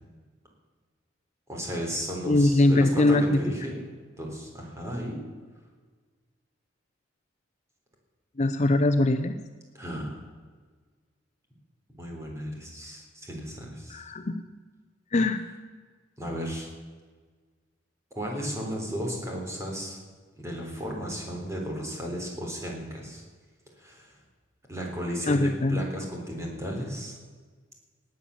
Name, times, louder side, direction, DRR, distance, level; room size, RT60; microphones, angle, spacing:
voice 1, 1.5-3.8 4.2-5.2 9.7-10.2 12.0-14.0 16.2-16.7 18.1-20.0 20.3-23.2 23.8-24.2 24.7-27.2, equal, 15° right, 0 dB, 3.7 m, -34 dB
voice 2, 2.3-3.4 8.4-9.3 13.9-14.3 15.1-15.4 25.3-25.8, left 2 dB, 35° left, 8 dB, 0.6 m, -22 dB
19.0 x 8.5 x 7.1 m, 1.5 s
head